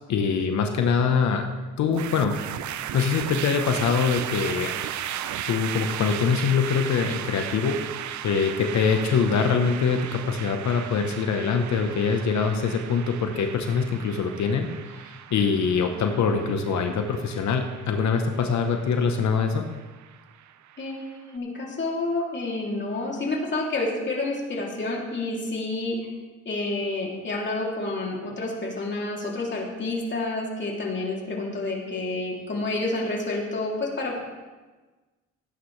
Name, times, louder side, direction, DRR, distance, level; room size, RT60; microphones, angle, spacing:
voice 1, 0.1-1.4 1.8-2.4 2.9-4.7 5.5-7.8 8.2-14.7 15.0-19.6, left 5 dB, 65° left, 5 dB, 1.1 m, -24 dB
sound 1, 1.9-21.2, right 11 dB, 70° right, 0.6 m, -36 dB
voice 2, 20.8-26.1 26.4-34.2, left 2 dB, 40° left, -2 dB, 3.1 m, -29 dB
17.0 x 9.2 x 3.3 m, 1.3 s
cardioid pair, 90°, 30 cm